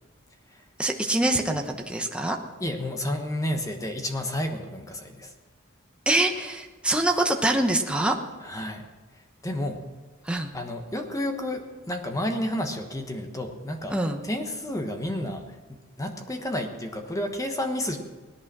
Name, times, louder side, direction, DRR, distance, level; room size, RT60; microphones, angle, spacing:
voice 1, 0.8-2.4 6.1-8.2 10.2-10.5 13.9-14.2, right 1 dB, 5° right, 3 dB, 1.0 m, -24 dB
voice 2, 2.6-5.3 8.4-8.9 9.4-9.8 10.5-14.0 14.2-18.0, left 1 dB, 15° left, 5 dB, 1.2 m, -31 dB
17.5 x 11.0 x 6.2 m, 1.3 s
head